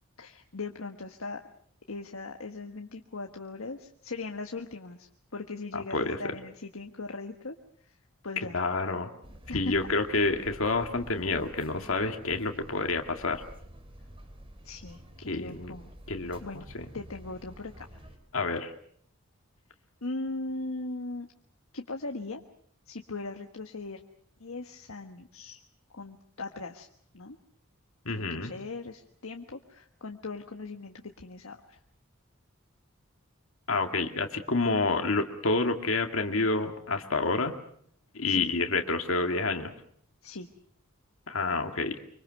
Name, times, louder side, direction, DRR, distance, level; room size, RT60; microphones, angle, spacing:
voice 1, 0.2-1.4 1.9-8.0 8.2-8.6 9.5-9.7 14.6-15.9 16.4-16.6 16.9-18.1 20.0-21.3 21.7-22.4 22.9-24.0 24.4-25.6 25.9-26.9 27.1-27.4 28.1-31.8 38.3-38.5 40.2-40.5, left 3 dB, 90° left, 4 dB, 1.5 m, -39 dB
voice 2, 8.5-9.1 9.5-13.4 15.3-15.8 16.1-16.4 16.7-16.8 18.3-18.7 28.1-28.5 33.7-37.6 38.1-39.7 41.3-42.0, left 3 dB, 70° left, 5 dB, 2.2 m, -28 dB
sound 1, 9.2-18.2, equal, 25° right, 3.3 m, -49 dB
25.0 x 25.0 x 6.5 m, 0.64 s
head